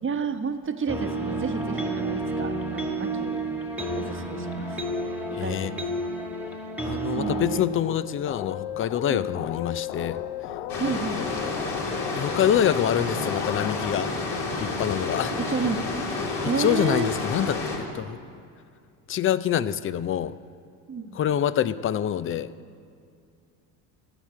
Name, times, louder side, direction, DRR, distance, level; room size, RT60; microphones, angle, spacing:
voice 1, 0.0-3.4 3.9-4.8 5.4-6.1 7.2-7.6 9.1-9.2 10.8-11.3 15.5-16.1 16.4-17.1 20.9-21.2, right 5 dB, 25° right, 7 dB, 1.1 m, -31 dB
sound 1, 0.9-7.6, right 2 dB, 5° right, 1.6 m, -30 dB
voice 2, 5.3-5.7 6.8-10.2 12.1-14.1 14.6-15.3 16.4-17.6 17.9-18.2 19.1-20.3 21.1-22.5, left 10 dB, 30° left, 16 dB, 0.4 m, -26 dB
sound 2, 7.2-14.0, left 12 dB, 80° left, 0.6 m, -36 dB
sound 3, 10.7-17.8, left 3 dB, 55° left, 2.7 m, -30 dB
15.0 x 5.8 x 9.1 m, 2.3 s
hypercardioid pair, 70°, 49 cm